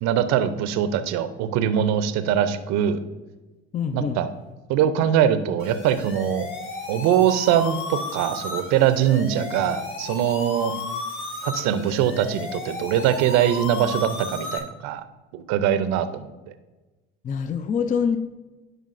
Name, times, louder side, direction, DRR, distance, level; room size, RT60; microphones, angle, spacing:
voice 1, 0.0-3.0 3.9-4.3 4.7-6.5 6.9-10.7 11.4-15.0 15.3-16.3, right 10 dB, 65° right, 12 dB, 0.6 m, -22 dB
voice 2, 3.7-4.2 17.2-18.2, left 6 dB, 25° left, 10 dB, 0.4 m, -25 dB
sound 1, 5.6-14.6, left 2 dB, 45° left, 1.7 m, -33 dB
11.0 x 5.2 x 2.5 m, 1.2 s
hypercardioid pair, 65°, 29 cm